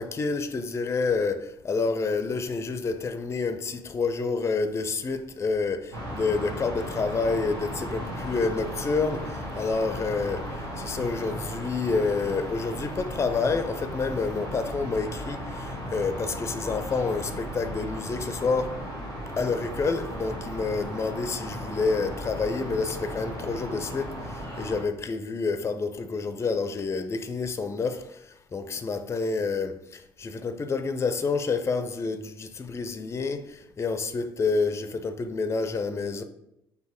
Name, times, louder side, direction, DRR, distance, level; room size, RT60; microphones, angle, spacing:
voice 1, 0.0-18.8 19.4-36.2, left 4 dB, 25° left, 0.4 m, -28 dB
sound 1, 5.9-24.8, equal, 80° right, 1.2 m, -36 dB
4.6 x 2.7 x 4.3 m
figure-of-eight pair, 50°, 12 cm